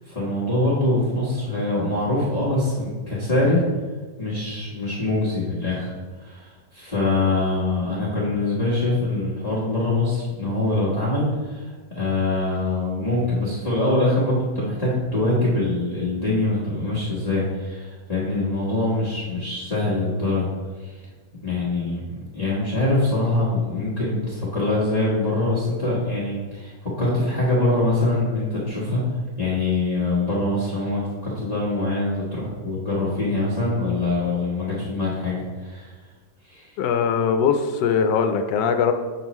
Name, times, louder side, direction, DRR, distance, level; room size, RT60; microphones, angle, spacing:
voice 1, 0.1-3.6 4.2-20.5 20.8-21.0 21.4-22.0 22.3-29.0 29.4-35.9 36.5-36.7, left 2 dB, 25° left, -9 dB, 1.3 m, -24 dB
voice 2, 36.8-38.9, left 6 dB, 85° left, 8 dB, 1.2 m, -21 dB
7.8 x 5.5 x 3.0 m, 1.4 s
omnidirectional pair, 1.8 m